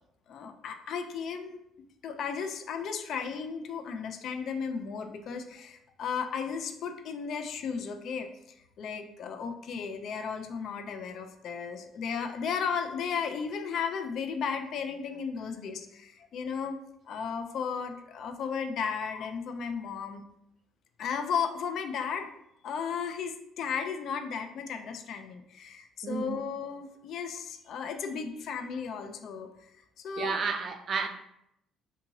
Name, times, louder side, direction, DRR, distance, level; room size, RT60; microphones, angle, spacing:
voice 1, 0.3-1.6 2.0-8.3 8.8-16.8 17.1-20.2 21.0-22.3 22.6-29.7 30.0-30.4, left 6 dB, 55° left, 7 dB, 0.3 m, -35 dB
voice 2, 26.0-26.4 30.2-31.1, right 5 dB, 40° right, 6 dB, 0.3 m, -31 dB
2.7 x 2.6 x 2.9 m, 0.77 s
cardioid pair, 150°, 0 cm